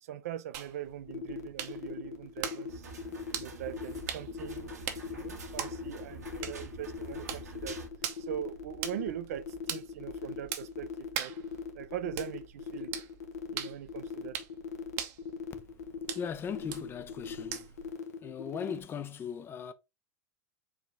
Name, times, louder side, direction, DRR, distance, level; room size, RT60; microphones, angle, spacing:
voice 1, 0.0-2.9 3.3-7.8 8.2-11.4 11.7-12.9 13.5-14.4, right 11 dB, 65° right, 0.5 m, -41 dB
sound 1, 0.5-17.9, right 9 dB, 50° right, 0.9 m, -43 dB
sound 2, 1.1-18.8, left 6 dB, 75° left, 0.9 m, -40 dB
sound 3, 2.7-7.9, right 3 dB, 85° right, 1.4 m, -47 dB
voice 2, 16.2-17.7 18.2-19.7, left 7 dB, 25° left, 0.5 m, -38 dB
4.7 x 2.9 x 3.6 m
hypercardioid pair, 95°, 8 cm